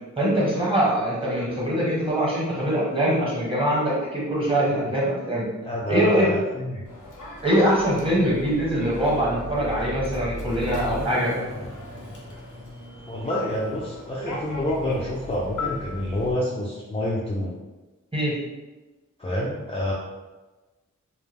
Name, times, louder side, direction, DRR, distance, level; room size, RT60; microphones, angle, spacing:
voice 1, 0.2-5.4 5.9-6.3 7.4-11.3 18.1-18.3, equal, 15° right, -7 dB, 1.2 m, -23 dB
voice 2, 5.6-6.8 13.1-17.5 19.2-19.9, left 1 dB, 20° left, -5 dB, 0.4 m, -28 dB
Human voice / Subway metro underground, 6.9-16.3, left 3 dB, 80° left, 0.6 m, -39 dB
sound 1, 6.9-16.3, left 1 dB, 45° right, 0.6 m, -40 dB
sound 2, 10.6-13.1, left 2 dB, 75° right, 1.0 m, -40 dB
2.3 x 2.0 x 3.4 m, 1.2 s
wide cardioid pair, 50°, 31 cm